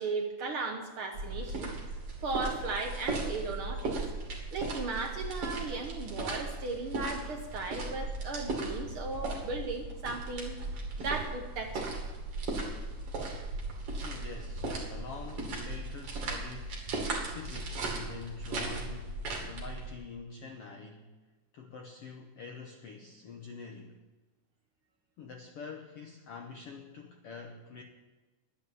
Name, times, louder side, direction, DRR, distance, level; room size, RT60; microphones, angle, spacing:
voice 1, 0.0-1.7 2.2-4.0 4.5-11.9, right 3 dB, 70° right, 3 dB, 1.3 m, -36 dB
sound 1, 1.1-19.9, right 2 dB, 45° right, 3.1 m, -37 dB
voice 2, 14.0-19.1 19.4-21.1 21.5-24.0 25.2-27.8, left 4 dB, 75° left, 2 dB, 1.4 m, -46 dB
11.5 x 9.6 x 7.2 m, 1.2 s
omnidirectional pair, 3.8 m